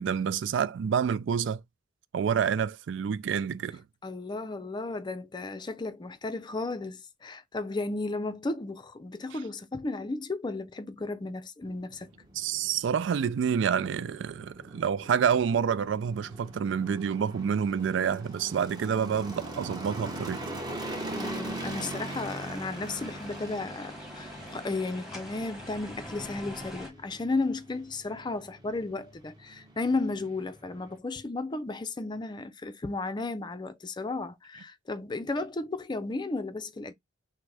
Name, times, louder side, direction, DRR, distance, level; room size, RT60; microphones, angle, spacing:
voice 1, 0.0-1.6 2.1-3.8 12.4-20.4, right 7 dB, 65° right, 0.3 m, -28 dB
voice 2, 4.0-12.1 21.2-36.9, left 3 dB, 25° left, 0.4 m, -34 dB
sound 1, 11.6-31.0, right 1 dB, 20° right, 1.1 m, -42 dB
sound 2, 20.8-26.9, left 1 dB, 5° right, 1.3 m, -44 dB
6.1 x 2.1 x 3.2 m
head